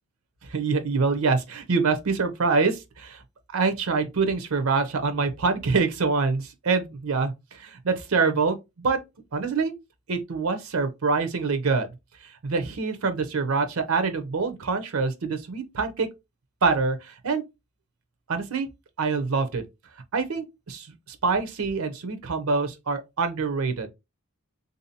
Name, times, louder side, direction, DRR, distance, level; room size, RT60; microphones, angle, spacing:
voice 1, 0.4-3.2 3.5-9.0 9.3-9.7 10.1-11.9 12.2-16.1 16.6-17.4 18.3-18.7 19.0-19.6 20.1-23.9, right 4 dB, 85° right, 0.6 m, -25 dB
3.7 x 2.7 x 2.7 m
head